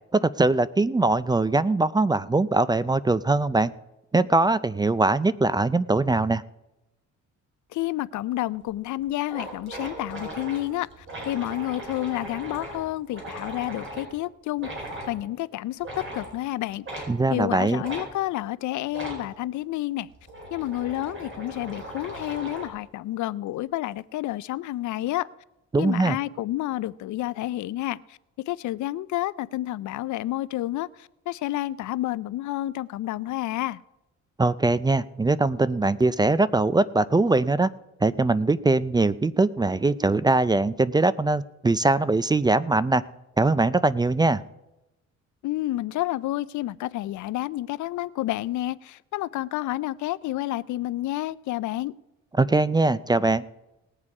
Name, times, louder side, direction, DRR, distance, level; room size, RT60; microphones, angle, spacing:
voice 1, 0.1-3.7 4.1-6.4 17.1-17.8 25.7-26.2 34.4-37.7 38.0-43.0 43.4-44.4 52.4-53.4, right 2 dB, 15° right, 17 dB, 0.4 m, -22 dB
voice 2, 7.7-10.9 11.2-14.7 15.1-17.0 17.3-20.1 20.5-25.3 25.8-28.2 28.5-33.8 45.4-51.9, left 15 dB, 70° left, 19 dB, 0.5 m, -30 dB
sound 1, 8.6-8.7 9.0-9.1 9.3-14.1 14.6-15.1 15.8-16.3 16.9-17.1 17.8-18.1 18.9-19.2 20.0-22.8, right 1 dB, 40° right, 4.7 m, -38 dB
19.0 x 7.4 x 4.8 m, 0.95 s
cardioid pair, 90°, 30 cm